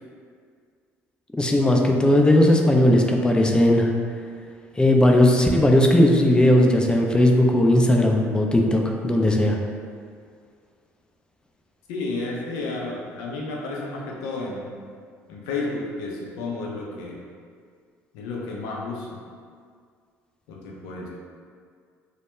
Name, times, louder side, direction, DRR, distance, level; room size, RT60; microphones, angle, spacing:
voice 1, 1.4-3.9 4.8-9.6, left 1 dB, 15° left, 1 dB, 0.3 m, -17 dB
voice 2, 11.9-14.8 15.3-17.2 18.1-19.2 20.5-21.1, left 3 dB, 75° left, -3 dB, 0.5 m, -31 dB
2.2 x 2.1 x 2.9 m, 2.1 s
hypercardioid pair, 65°, 7 cm